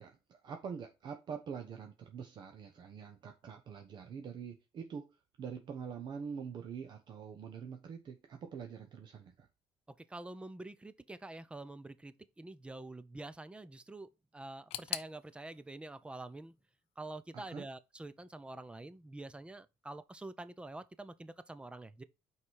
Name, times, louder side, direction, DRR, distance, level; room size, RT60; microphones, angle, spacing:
voice 1, 0.0-5.1 5.4-9.5 17.3-17.6, right 6 dB, 45° right, 1.0 m, -45 dB
voice 2, 10.0-16.6 17.0-22.0, right 2 dB, 10° right, 0.6 m, -47 dB
sound 1, 14.7-17.6 17.8-18.6 18.9-19.0 19.9-20.0, left 14 dB, 70° left, 0.6 m, -46 dB
6.0 x 4.8 x 4.7 m
cardioid pair, 120°, 11 cm